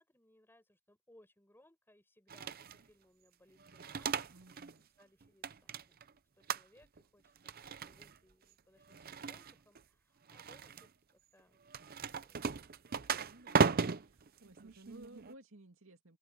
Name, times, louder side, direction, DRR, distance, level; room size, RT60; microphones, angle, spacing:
voice 1, 0.0-6.0 6.4-11.6 12.2-12.6, left 1 dB, 10° left, 5.1 m, -67 dB
sound 1, 2.3-2.8 3.6-4.7 5.0-6.1 6.5-7.0 7.3-8.2 8.9-9.8 10.3-10.9 11.7-15.3, right 5 dB, 45° right, 0.6 m, -36 dB
voice 2, 4.3-4.9 13.2-13.7 14.0-16.2, right 1 dB, 60° right, 2.7 m, -57 dB
head